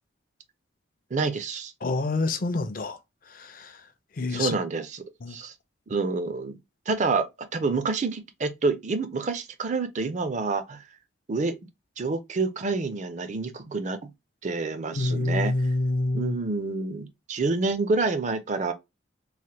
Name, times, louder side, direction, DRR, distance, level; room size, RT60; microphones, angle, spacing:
voice 1, 1.1-1.7 4.3-5.0 5.3-5.5 5.9-6.6 6.9-7.3 7.5-10.8 11.3-11.6 12.0-14.1 14.4-15.5 16.1-18.7, right 3 dB, 40° right, 0.4 m, -28 dB
voice 2, 1.8-3.0 3.3-3.8 4.2-4.6 5.2-5.4 14.9-16.4, left 2 dB, 45° left, 0.5 m, -27 dB
3.2 x 2.1 x 2.8 m
head